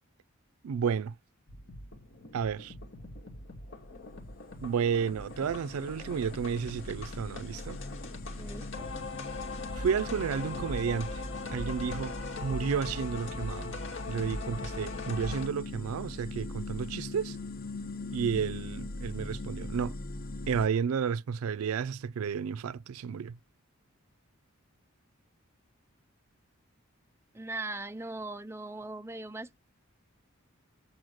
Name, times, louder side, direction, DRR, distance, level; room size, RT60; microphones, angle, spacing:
voice 1, 0.6-1.1 2.3-2.7 4.6-7.8 9.7-11.2 11.5-12.2 12.4-13.8 14.1-17.4 18.1-19.9 20.5-23.4, right 6 dB, 85° right, 0.4 m, -32 dB
sound 1, 1.5-15.5, left 2 dB, 60° left, 2.3 m, -40 dB
sound 2, 3.5-20.7, left 2 dB, 40° left, 0.7 m, -42 dB
voice 2, 8.4-8.9 27.3-29.6, right 2 dB, 10° right, 0.4 m, -39 dB
7.9 x 4.3 x 6.3 m
head